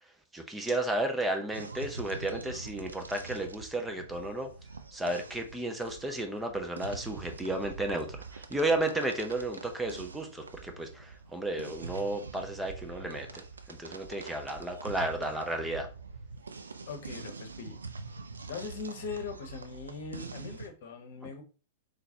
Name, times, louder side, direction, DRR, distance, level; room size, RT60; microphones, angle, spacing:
voice 1, 0.3-4.5 4.9-13.4 13.7-15.9, right 1 dB, 5° right, 4 dB, 0.6 m, -33 dB
sound 1, 1.5-20.7, right 4 dB, 75° right, 0.4 m, -44 dB
voice 2, 16.9-17.8 18.5-21.4, left 5 dB, 55° left, 6 dB, 0.9 m, -40 dB
3.9 x 3.2 x 2.8 m, 0.35 s
figure-of-eight pair, 100°, 0 cm